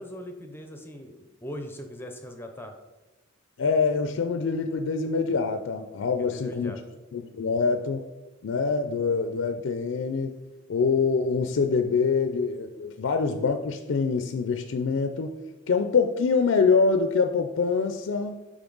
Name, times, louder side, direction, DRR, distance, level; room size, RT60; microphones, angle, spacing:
voice 1, 0.0-2.7 6.2-6.8, equal, 10° left, 5 dB, 0.5 m, -40 dB
voice 2, 3.6-6.7 7.1-8.0 8.4-10.4 10.7-15.3 15.7-18.4, left 5 dB, 70° left, 7 dB, 0.4 m, -25 dB
7.0 x 5.1 x 3.9 m, 1.1 s
head